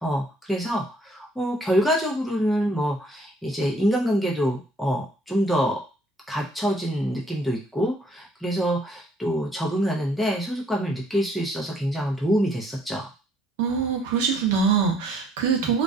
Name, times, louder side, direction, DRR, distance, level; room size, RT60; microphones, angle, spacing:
voice 1, 0.0-5.8 6.3-13.1 15.6-15.7, equal, ahead, -3 dB, 0.5 m, -25 dB
voice 2, 13.6-15.8, right 6 dB, 80° right, 3 dB, 0.7 m, -23 dB
2.3 x 2.2 x 2.5 m, 0.32 s
cardioid pair, 150°, 0 cm